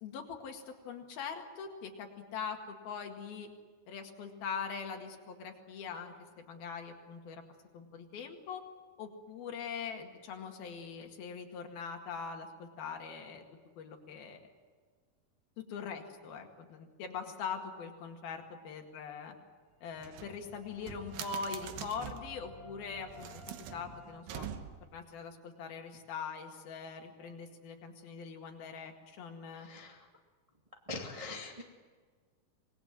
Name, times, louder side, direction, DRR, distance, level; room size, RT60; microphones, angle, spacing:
voice 1, 0.0-3.5 3.9-7.4 7.7-8.6 9.0-13.4 13.8-14.5 15.6-19.4 19.8-23.3 23.7-24.5 24.9-29.7, left 6 dB, 75° left, 3 dB, 3.9 m, -42 dB
sound 1, 19.7-24.0, left 1 dB, 45° right, 8.0 m, -54 dB
sound 2, 20.0-22.4 23.0-25.0, right 8 dB, 75° right, 2.9 m, -45 dB
voice 2, 29.5-30.0 30.9-31.6, left 3 dB, 20° right, 1 dB, 1.0 m, -43 dB
25.5 x 20.0 x 7.7 m, 1.6 s
omnidirectional pair, 4.4 m